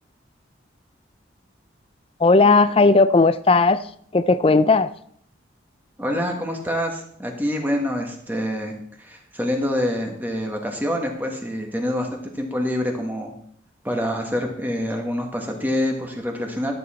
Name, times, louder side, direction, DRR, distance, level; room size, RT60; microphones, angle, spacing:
voice 1, 2.2-3.8 4.1-4.9, left 3 dB, 30° left, 15 dB, 0.4 m, -16 dB
voice 2, 6.0-8.7 9.0-13.3 13.8-16.7, equal, 10° right, 2 dB, 1.5 m, -26 dB
12.5 x 8.3 x 4.3 m, 0.65 s
head